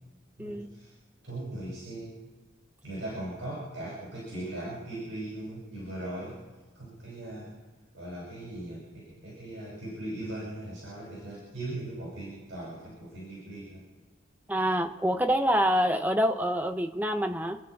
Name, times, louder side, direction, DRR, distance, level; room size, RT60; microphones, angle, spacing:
voice 1, 0.4-0.9 1.2-2.1 2.8-6.4 6.7-7.5 7.9-13.8, right 1 dB, 65° right, -6 dB, 5.8 m, -39 dB
voice 2, 14.5-17.6, equal, 10° right, 7 dB, 0.8 m, -26 dB
28.0 x 9.8 x 4.7 m, 1.3 s
head